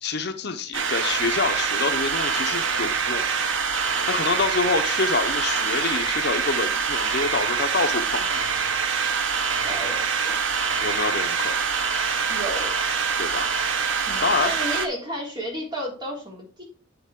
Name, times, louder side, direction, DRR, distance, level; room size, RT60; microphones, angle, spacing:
voice 1, 0.0-3.3 4.1-8.4 10.8-11.6 13.2-13.5 14.2-14.5, left 4 dB, 60° left, 7 dB, 0.8 m, -27 dB
sound 1, 0.7-14.9, right 5 dB, 75° right, 0.9 m, -25 dB
voice 2, 9.6-10.4 12.3-12.8 14.1-16.6, equal, 25° right, -3 dB, 3.4 m, -32 dB
7.7 x 6.9 x 3.7 m, 0.36 s
head